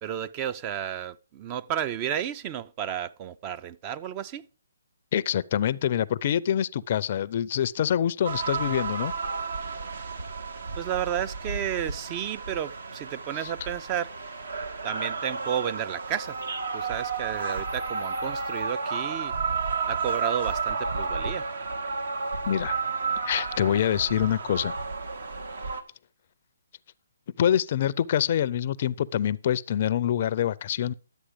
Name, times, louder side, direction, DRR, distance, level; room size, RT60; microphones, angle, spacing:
voice 1, 0.0-4.5 10.8-14.1 14.8-16.4 16.7-19.3 19.9-21.5, right 10 dB, 25° right, 0.5 m, -32 dB
voice 2, 5.1-9.1 13.4-13.5 22.5-22.8 23.3-24.7 27.4-30.9, left 10 dB, 40° left, 0.5 m, -25 dB
sound 1, 8.2-25.8, right 4 dB, 70° right, 1.6 m, -32 dB
11.5 x 8.1 x 5.0 m
hypercardioid pair, 160°, 0 cm